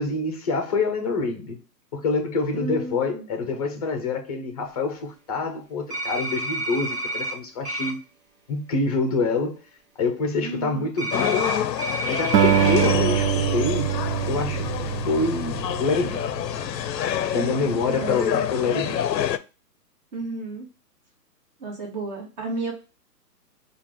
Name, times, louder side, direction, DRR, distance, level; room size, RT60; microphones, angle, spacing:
voice 1, 0.0-1.6 1.9-8.0 8.5-9.6 10.0-11.5 12.1-13.3 13.5-13.9 14.3-16.2 17.3-19.0, left 3 dB, 25° left, 0.7 m, -26 dB
voice 2, 2.5-3.3 10.4-10.9 11.5-11.6 17.3-18.9 20.1-20.7 21.6-22.7, right 3 dB, 25° right, 1.4 m, -33 dB
sound 1, 5.9-7.3 7.6-7.9 11.0-12.9, right 1 dB, 40° right, 1.9 m, -29 dB
sound 2, 11.1-19.4, left 10 dB, 80° left, 0.6 m, -28 dB
Acoustic guitar, 12.3-16.8, right 10 dB, 90° right, 0.6 m, -24 dB
4.7 x 2.5 x 3.6 m
hypercardioid pair, 155°, 49 cm